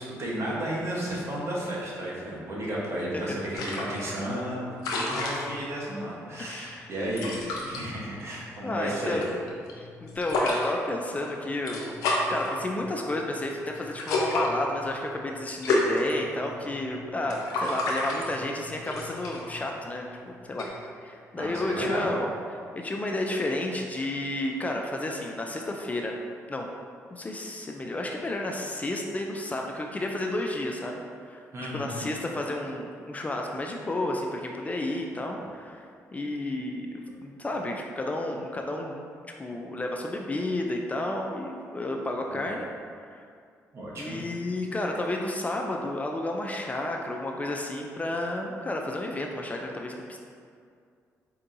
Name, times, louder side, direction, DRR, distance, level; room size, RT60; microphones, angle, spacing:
voice 1, 0.0-9.2 21.3-22.1 31.5-32.0 42.3-42.5 43.7-44.2, right 1 dB, 50° right, -5 dB, 1.1 m, -33 dB
sound 1, 3.5-20.7, left 2 dB, 90° left, 0.5 m, -33 dB
voice 2, 6.4-6.9 8.6-9.3 9.8-12.0 12.3-20.2 20.4-20.7 21.0-26.2 26.5-26.7 27.1-31.0 31.3-31.4 31.7-35.9 36.1-39.0 39.4-42.7 42.9-43.2 43.9-50.2, left 1 dB, 25° left, 1 dB, 0.4 m, -31 dB
4.4 x 2.8 x 2.6 m, 2.2 s
cardioid pair, 70°, 6 cm